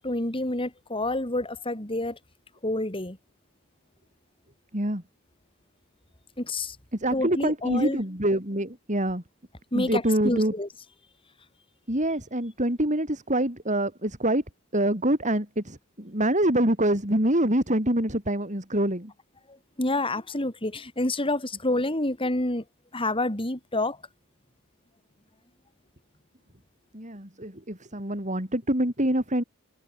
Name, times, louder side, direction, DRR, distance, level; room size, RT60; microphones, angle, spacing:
voice 1, 0.0-2.2 2.6-3.2 6.4-6.8 7.1-8.0 9.7-10.7 19.5-22.6 22.9-24.0, left 2 dB, 25° left, 3.4 m, -28 dB
voice 2, 6.9-9.2 9.7-10.5 11.9-14.4 14.7-19.1 26.9-29.4, right 1 dB, 35° right, 7.2 m, -25 dB
head